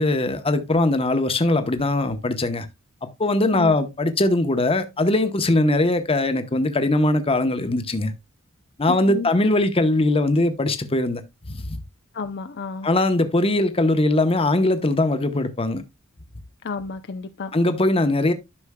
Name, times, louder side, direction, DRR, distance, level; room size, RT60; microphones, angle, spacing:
voice 1, 0.0-2.7 3.0-8.1 8.8-11.2 11.5-11.8 12.8-15.8 17.5-18.3, left 2 dB, 25° left, 0.9 m, -21 dB
voice 2, 8.9-9.3 12.1-12.9 16.6-17.5, left 4 dB, 55° left, 0.6 m, -31 dB
12.0 x 6.1 x 2.2 m
head